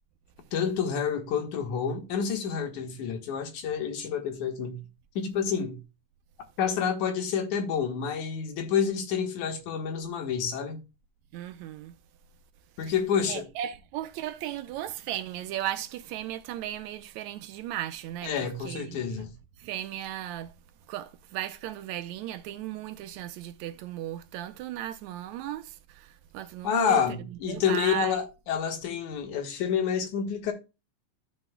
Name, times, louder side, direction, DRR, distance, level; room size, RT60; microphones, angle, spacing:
voice 1, 0.5-4.8 5.2-5.8 6.6-10.8 12.8-13.5 18.2-19.3 26.6-30.5, left 7 dB, 80° left, 2.9 m, -28 dB
voice 2, 11.3-11.9 13.3-19.0 19.6-20.5 20.9-27.0 27.5-28.2, right 12 dB, 80° right, 1.9 m, -36 dB
13.5 x 6.2 x 2.2 m
omnidirectional pair, 3.4 m